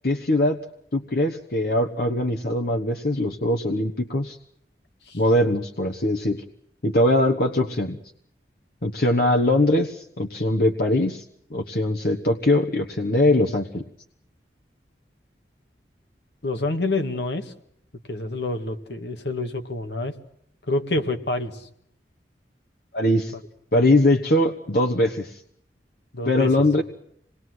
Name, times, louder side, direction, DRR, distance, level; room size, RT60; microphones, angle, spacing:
voice 1, 0.0-0.6 0.9-4.4 5.1-6.4 6.8-8.0 8.8-11.2 11.5-13.8 22.9-23.3 23.7-25.4 26.3-26.8, left 1 dB, 60° left, 5 dB, 1.3 m, -21 dB
voice 2, 16.4-17.5 18.1-20.1 20.7-21.7 26.1-26.5 26.8-26.9, left 2 dB, 75° left, 7 dB, 2.0 m, -27 dB
27.0 x 20.5 x 7.9 m, 0.69 s
head